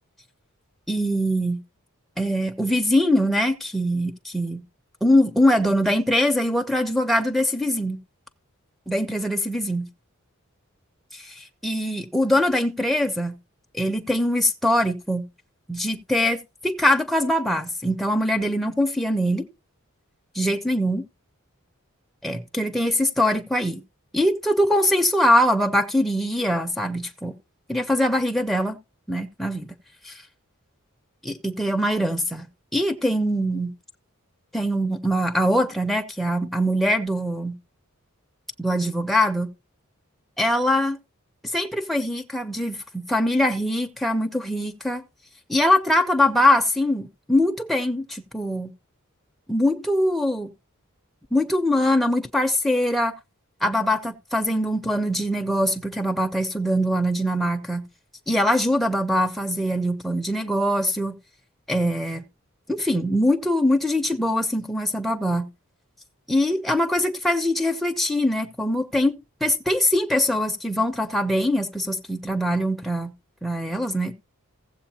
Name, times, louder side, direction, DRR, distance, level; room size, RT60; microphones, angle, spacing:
voice 1, 0.9-1.6 2.2-4.6 5.0-8.0 8.9-9.9 11.1-13.4 13.7-15.3 15.7-19.5 20.3-21.0 22.2-23.8 24.1-27.4 27.7-28.8 29.1-29.7 30.0-30.2 31.2-33.7 34.5-37.6 38.6-39.5 40.4-41.0 41.4-45.0 45.5-48.7 49.5-50.5 51.3-53.1 53.6-57.9 58.3-61.1 61.7-62.3 62.7-65.5 66.3-73.1 73.4-74.1, left 1 dB, ahead, 0.5 m, -23 dB
15.5 x 7.7 x 2.8 m
head